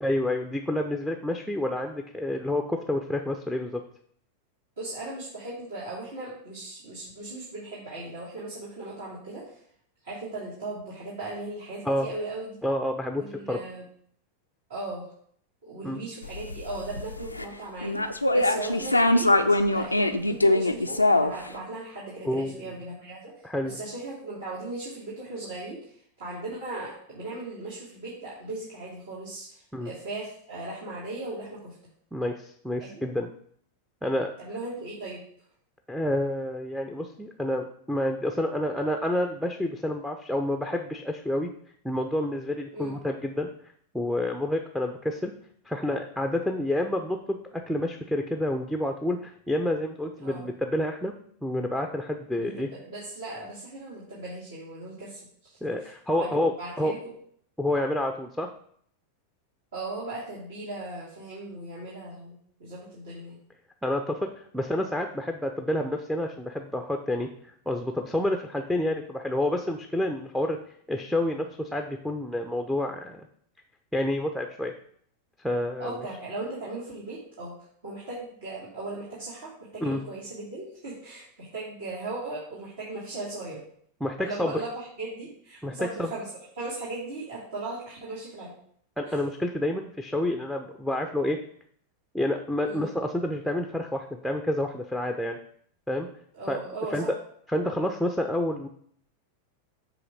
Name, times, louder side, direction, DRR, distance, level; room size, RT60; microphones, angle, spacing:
voice 1, 0.0-3.8 11.8-12.1 12.6-13.2 13.5-13.6 15.8-16.0 22.2-22.6 23.4-23.8 29.7-29.9 32.1-33.3 34.0-34.3 35.9-41.5 41.8-43.5 43.9-45.3 45.7-51.1 51.4-52.7 55.6-56.9 57.6-58.5 63.8-67.3 67.7-70.6 70.9-73.3 73.9-74.7 75.4-75.9 79.8-80.0 84.0-84.6 85.6-86.1 89.0-91.4 92.1-95.4 95.9-96.1 96.5-96.6 96.9-97.1 97.5-98.7, left 1 dB, ahead, 4 dB, 0.6 m, -29 dB
voice 2, 4.8-9.6 10.0-12.6 13.1-13.8 14.7-15.0 15.6-18.0 18.3-31.7 32.8-33.0 34.4-35.2 42.7-43.0 50.2-50.4 52.3-55.9 56.2-57.1 59.7-63.4 75.8-77.5 77.8-83.6 84.2-86.3 86.6-88.5 89.1-89.2 92.6-92.9 96.3-97.1, right 2 dB, 65° right, -8 dB, 2.7 m, -38 dB
sound 1, 16.2-17.4 17.8-21.5, left 2 dB, 85° left, 0.5 m, -23 dB
7.8 x 3.2 x 6.2 m, 0.64 s
figure-of-eight pair, 90°, 0 cm